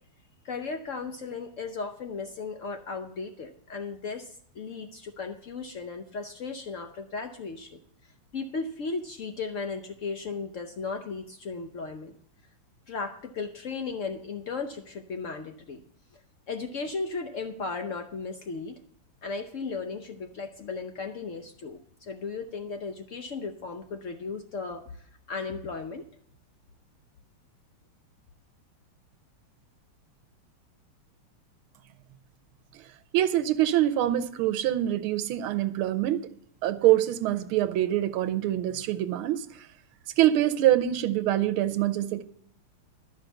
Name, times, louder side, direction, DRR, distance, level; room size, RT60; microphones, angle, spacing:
voice 1, 0.4-7.8 8.3-12.1 12.9-15.8 16.5-18.8 19.2-25.0 25.3-26.0, left 4 dB, 90° left, 0.6 m, -36 dB
voice 2, 33.1-36.2 36.6-39.4 40.2-42.2, right 13 dB, 80° right, 1.5 m, -24 dB
13.0 x 5.7 x 7.8 m
omnidirectional pair, 2.4 m